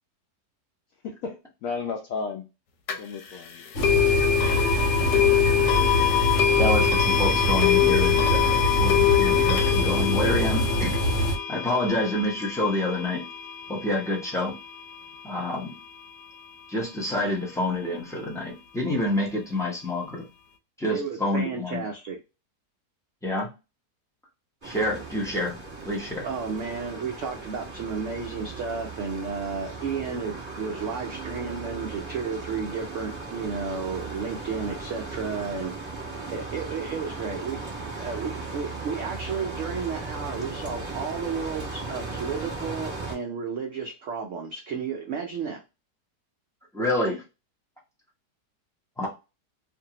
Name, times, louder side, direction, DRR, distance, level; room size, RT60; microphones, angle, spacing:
voice 1, 1.0-2.4 3.0-3.7, left 5 dB, 70° left, 0.8 m, -33 dB
sound 1, 2.9-3.0 3.8-14.8, left 9 dB, 85° left, 1.2 m, -24 dB
sound 2, 3.7-11.4, equal, 55° left, 1.2 m, -25 dB
voice 2, 6.6-11.0 11.5-13.3 13.7-14.5 15.2-15.7 16.7-20.2 20.8-21.8 23.2-23.5 24.6-25.6 25.8-26.3 46.7-47.2 49.0-49.1, left 1 dB, 5° left, 0.4 m, -28 dB
voice 3, 20.9-22.2 26.2-35.7 36.3-45.6, right 5 dB, 75° right, 0.6 m, -32 dB
sound 3, 24.6-43.1, right 3 dB, 20° right, 1.3 m, -37 dB
2.6 x 2.5 x 2.8 m
omnidirectional pair, 1.8 m